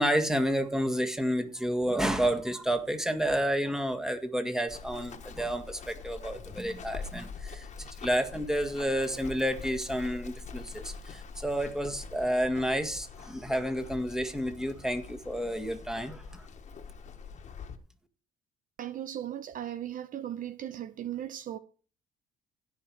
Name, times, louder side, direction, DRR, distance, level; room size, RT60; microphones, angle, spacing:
voice 1, 0.0-16.5, equal, 5° right, 1.8 m, -30 dB
Run, 4.7-17.8, left 5 dB, 45° left, 1.5 m, -44 dB
voice 2, 18.8-21.6, right 11 dB, 55° right, 0.7 m, -37 dB
16.0 x 5.8 x 4.7 m
cardioid pair, 110°, 17 cm